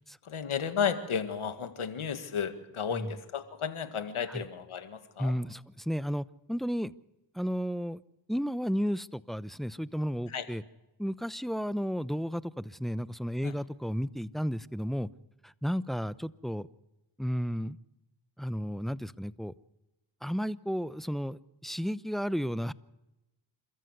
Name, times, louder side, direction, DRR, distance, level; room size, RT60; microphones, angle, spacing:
voice 1, 0.2-5.4 10.3-10.5 13.4-13.5, left 7 dB, 80° left, 9 dB, 2.0 m, -33 dB
voice 2, 5.2-6.9 7.3-8.0 8.3-10.6 11.0-15.1 15.4-16.7 17.2-17.8 18.4-19.5 20.2-22.7, equal, ahead, 16 dB, 0.8 m, -33 dB
28.0 x 14.0 x 8.1 m, 0.96 s
cardioid pair, 40°, 49 cm